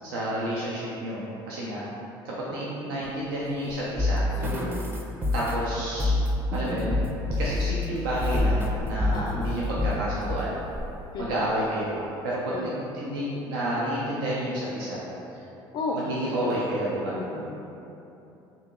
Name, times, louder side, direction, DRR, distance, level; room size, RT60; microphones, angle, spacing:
voice 1, 0.0-1.8 2.2-4.3 5.3-6.2 6.5-7.0 7.4-10.5 11.2-15.0 15.3-15.4 15.9-17.1, right 1 dB, 85° right, -7 dB, 0.5 m, -30 dB
voice 2, 2.5-2.9 9.1-9.5 11.1-11.4 12.5-12.8 15.7-16.7 17.1-17.6, left 3 dB, 50° left, -1 dB, 0.4 m, -34 dB
Zipper (clothing), 3.0-4.8 6.2-6.3 7.9-8.9 9.4-9.5 10.2-11.0 12.2-12.3 12.7-12.8, equal, 55° right, 1.5 m, -37 dB
sound 1, 4.0-7.8 8.2-8.7 9.0-9.9 10.3-10.4, left 2 dB, 20° right, 0.5 m, -26 dB
2.8 x 2.7 x 3.6 m, 3.0 s
hypercardioid pair, 70°, 12 cm